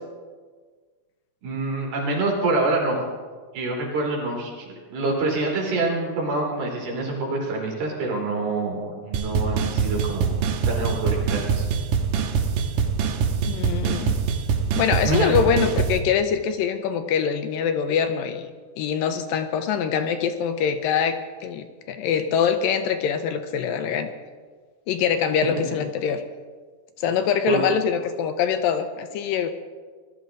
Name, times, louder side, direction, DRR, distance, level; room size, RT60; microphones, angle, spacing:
voice 1, 1.4-3.0 3.5-10.3 10.7-11.7 15.0-15.3 27.5-27.6, right 2 dB, 90° right, -2 dB, 5.2 m, -26 dB
sound 1, 9.1-16.0, right 6 dB, 70° right, 2.4 m, -24 dB
voice 2, 13.5-14.2 14.8-18.5 18.8-24.1 24.9-26.3 27.0-29.5, left 7 dB, 80° left, 8 dB, 2.3 m, -24 dB
20.0 x 12.5 x 3.8 m, 1.5 s
omnidirectional pair, 4.3 m